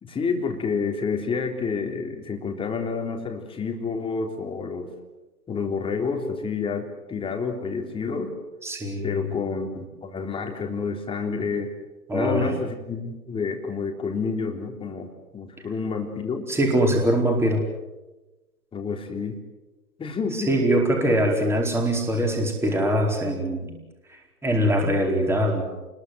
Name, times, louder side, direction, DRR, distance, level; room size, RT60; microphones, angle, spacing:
voice 1, 0.0-4.9 5.5-8.4 9.0-11.7 12.1-16.5 18.7-19.4 20.0-20.6, left 5 dB, 10° left, 3 dB, 3.7 m, -29 dB
voice 2, 8.6-9.3 12.1-12.6 16.5-17.6 20.3-23.8 24.1-25.6, equal, 5° right, 1 dB, 4.6 m, -23 dB
29.5 x 21.5 x 8.0 m, 1.1 s
hypercardioid pair, 135°, 47 cm